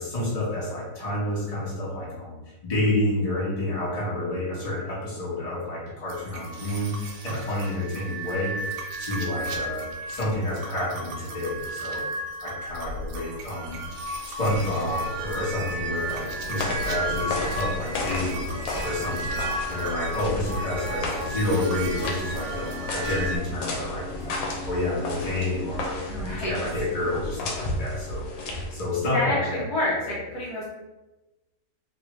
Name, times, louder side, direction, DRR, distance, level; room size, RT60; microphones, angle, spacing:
voice 1, 0.0-8.5 9.0-12.1 12.4-13.8 14.2-26.0 26.3-29.7 30.0-30.2, left 1 dB, 25° left, -7 dB, 0.8 m, -29 dB
sound 1, 6.1-23.4, right 1 dB, 70° right, 1.1 m, -33 dB
sound 2, 15.8-29.0, left 2 dB, 85° left, 1.4 m, -34 dB
sound 3, 20.4-26.3, left 1 dB, 40° right, 0.9 m, -40 dB
voice 2, 26.0-26.6 29.0-30.6, left 1 dB, 70° left, -5 dB, 1.1 m, -28 dB
3.2 x 2.3 x 3.0 m, 1.1 s
omnidirectional pair, 2.0 m